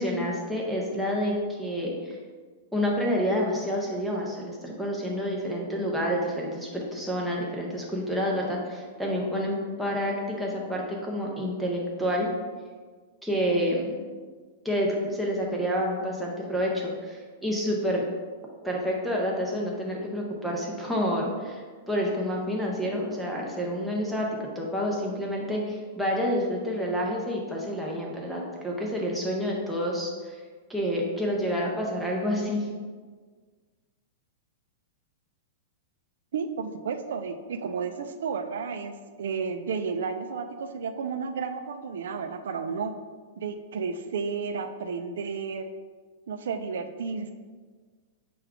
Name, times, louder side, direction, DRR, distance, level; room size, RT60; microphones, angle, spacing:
voice 1, 0.0-2.2 2.7-12.3 13.2-13.9 14.6-18.0 18.6-30.3 30.7-32.7, equal, ahead, -4 dB, 0.5 m, -28 dB
voice 2, 36.3-42.9 43.4-45.7 46.3-47.3, right 5 dB, 75° right, 7 dB, 0.3 m, -32 dB
5.9 x 2.3 x 3.6 m, 1.5 s
supercardioid pair, 175°, 0 cm